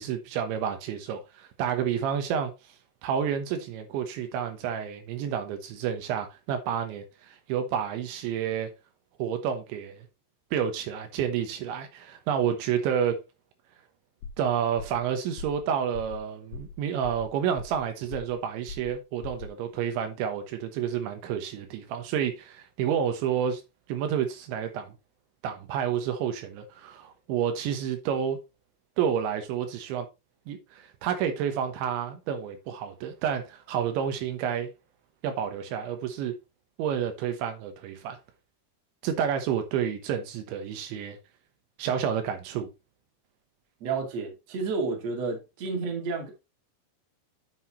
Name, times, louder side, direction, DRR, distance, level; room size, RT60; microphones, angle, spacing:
voice 1, 0.0-2.8 3.0-8.7 9.2-10.1 10.5-13.2 14.4-23.6 23.9-24.9 25.4-28.4 29.0-30.1 30.5-34.7 35.2-36.3 36.8-38.2 39.0-41.2 41.8-42.7, right 8 dB, 80° right, 3.5 m, -30 dB
sound 1, 14.2-14.5 14.8-15.1 15.4-15.6 15.9-16.2 16.5-16.8 17.0-17.8 18.1-18.4 18.7-19.0 19.2-19.5, left 4 dB, 55° left, 2.7 m, -40 dB
voice 2, 43.8-46.3, right 4 dB, 45° right, 2.9 m, -31 dB
9.6 x 6.6 x 3.1 m
omnidirectional pair, 5.2 m